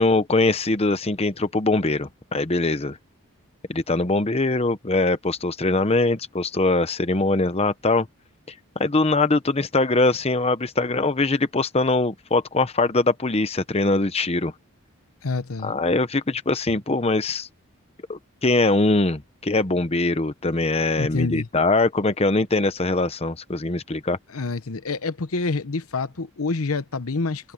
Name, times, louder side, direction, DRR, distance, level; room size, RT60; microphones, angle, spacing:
voice 1, 0.0-3.0 3.7-8.1 8.8-14.5 15.6-17.5 18.1-24.2, left 2 dB, 25° left, 0.8 m, -22 dB
voice 2, 15.2-15.7 21.0-21.5 24.3-27.5, left 3 dB, 75° left, 0.9 m, -27 dB
head